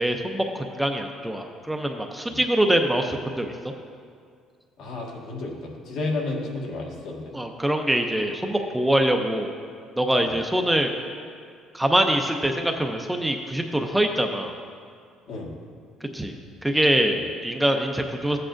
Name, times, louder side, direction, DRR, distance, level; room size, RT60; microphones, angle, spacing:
voice 1, 0.0-3.5 7.3-9.5 10.0-10.9 11.7-14.5 16.1-16.3 16.6-17.2 17.4-18.4, right 1 dB, 5° right, 3 dB, 0.5 m, -24 dB
voice 2, 4.8-7.3 10.2-10.4 15.3-15.5 17.1-17.2, left 2 dB, 70° left, -2 dB, 1.7 m, -32 dB
14.0 x 8.5 x 2.5 m, 2.1 s
cardioid pair, 140°, 0 cm